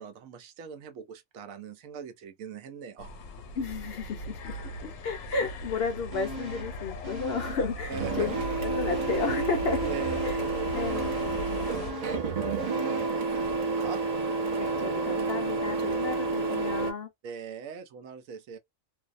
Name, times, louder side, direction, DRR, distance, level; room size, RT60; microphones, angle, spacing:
voice 1, 0.0-3.1 7.9-8.1 9.9-12.4 12.8-14.0 17.2-18.6, right 6 dB, 85° right, 1.0 m, -41 dB
sound 1, 3.0-11.9, left 1 dB, 80° left, 1.0 m, -39 dB
voice 2, 3.6-4.6 5.0-8.4 8.6-9.9 10.2-10.4 10.7-11.1 14.6-17.1, left 4 dB, 60° left, 0.7 m, -32 dB
sound 2, 6.1-6.8 7.0-8.6 8.9-13.3 13.6-13.7, equal, 20° right, 0.9 m, -41 dB
Printer, 7.9-16.9, right 3 dB, 45° right, 0.6 m, -30 dB
2.6 x 2.0 x 2.4 m
omnidirectional pair, 1.4 m